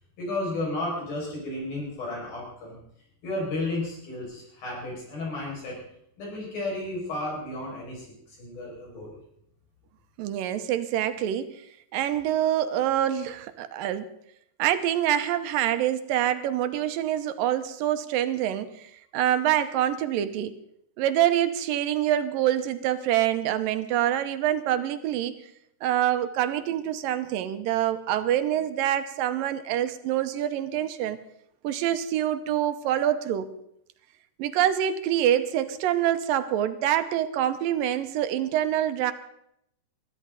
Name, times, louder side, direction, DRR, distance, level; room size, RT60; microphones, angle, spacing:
voice 1, 0.2-2.8 3.2-5.8 6.2-9.2, left 2 dB, 85° left, -2 dB, 7.7 m, -33 dB
voice 2, 10.2-11.6 11.9-14.1 14.6-20.6 21.0-25.4 25.8-31.2 31.6-33.5 34.4-39.1, right 11 dB, 80° right, 10 dB, 2.5 m, -26 dB
22.0 x 14.0 x 4.0 m, 0.74 s
omnidirectional pair, 4.1 m